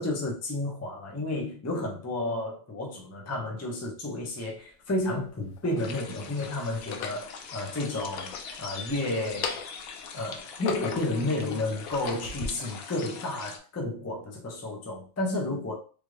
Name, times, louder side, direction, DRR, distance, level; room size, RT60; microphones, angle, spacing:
voice 1, 0.0-9.6 10.1-15.7, left 2 dB, 25° left, 0.4 m, -31 dB
sound 1, 4.2-4.3 5.2-6.0 6.7-7.3 8.0-8.9 9.3-9.9 10.3-11.2 11.7-12.5, left 6 dB, 90° left, 1.0 m, -37 dB
sound 2, 5.8-13.6, left 5 dB, 65° left, 0.6 m, -42 dB
3.3 x 2.4 x 3.1 m
omnidirectional pair, 1.4 m